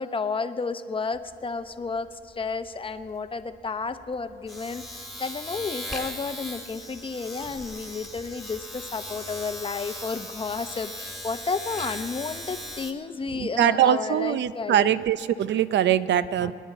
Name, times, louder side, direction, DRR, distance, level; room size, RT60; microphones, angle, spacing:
voice 1, 0.0-14.9 16.4-16.5, left 4 dB, 25° left, 10 dB, 0.8 m, -32 dB
Domestic sounds home sounds, 1.1-1.4 1.6-12.9, left 1 dB, ahead, 1.9 m, -38 dB
voice 2, 13.3-16.5, right 10 dB, 65° right, 15 dB, 0.6 m, -22 dB
25.5 x 10.5 x 4.2 m, 2.3 s
cardioid pair, 90°, 20 cm